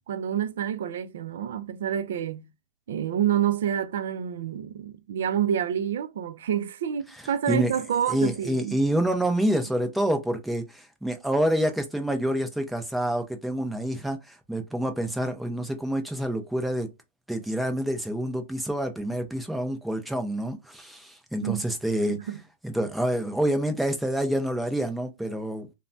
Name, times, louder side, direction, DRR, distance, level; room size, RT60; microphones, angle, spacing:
voice 1, 0.1-2.5 2.9-8.8 21.4-21.7 22.1-22.4, right 9 dB, 75° right, 0.4 m, -28 dB
voice 2, 8.1-16.9 17.3-22.2 22.6-25.7, right 1 dB, ahead, 0.5 m, -27 dB
3.2 x 2.1 x 2.5 m
supercardioid pair, 150°, 0 cm